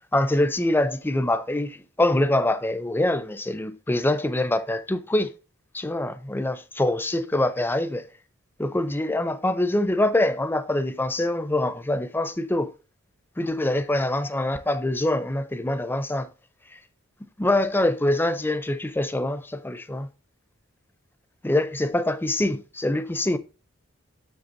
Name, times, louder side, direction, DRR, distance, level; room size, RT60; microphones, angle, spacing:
voice 1, 0.1-5.3 5.7-8.0 8.6-12.7 13.4-16.3 17.4-20.1 21.4-23.4, left 1 dB, 10° left, 0.5 m, -24 dB
7.8 x 6.5 x 2.6 m
head